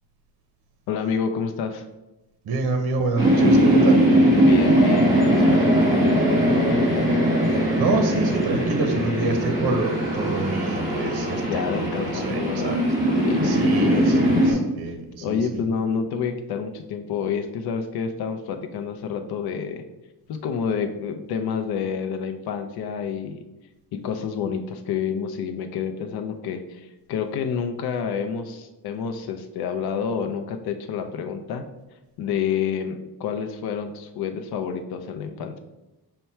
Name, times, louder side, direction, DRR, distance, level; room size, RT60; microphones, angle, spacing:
voice 1, 0.9-1.8 4.4-6.9 9.1-9.4 11.4-14.6 15.2-19.8 20.3-23.4 23.9-31.6 32.2-35.6, left 6 dB, 70° left, 6 dB, 0.5 m, -29 dB
voice 2, 2.5-4.0 7.7-12.9 13.4-15.0 15.3-15.4, right 3 dB, 70° right, 5 dB, 0.7 m, -27 dB
sound 1, 3.2-14.5, right 1 dB, 10° right, 1.5 m, -20 dB
5.7 x 2.2 x 4.2 m, 1.0 s
wide cardioid pair, 155°, 39 cm